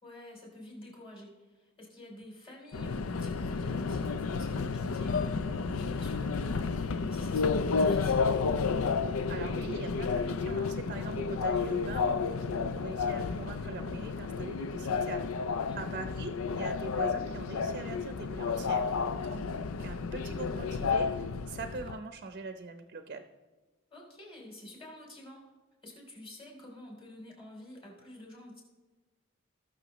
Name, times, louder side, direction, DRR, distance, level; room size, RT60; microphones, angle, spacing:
voice 1, 0.0-8.7 15.6-16.0 23.9-25.4 25.8-28.6, left 1 dB, 25° left, -1 dB, 3.3 m, -48 dB
Subway metro underground, 2.7-22.0, left 5 dB, 85° left, 0.5 m, -31 dB
voice 2, 9.3-19.5 19.8-23.2, right 3 dB, 45° right, 7 dB, 0.6 m, -42 dB
19.0 x 6.6 x 3.0 m, 1.3 s
head